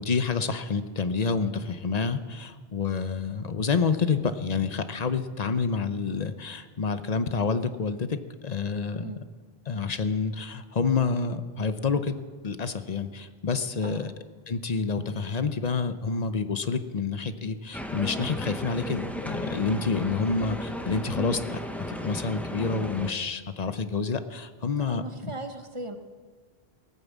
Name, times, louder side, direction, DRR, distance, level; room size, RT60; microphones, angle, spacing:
voice 1, 0.0-8.2 8.4-9.1 9.7-14.1 14.5-21.6 21.9-25.3, left 5 dB, 45° left, 11 dB, 0.8 m, -28 dB
voice 2, 13.8-14.1 24.9-26.0, right 1 dB, 30° right, 7 dB, 1.0 m, -38 dB
sound 1, 17.7-23.1, equal, ahead, 0.8 m, -35 dB
19.0 x 9.0 x 7.3 m, 1.5 s
omnidirectional pair, 1.1 m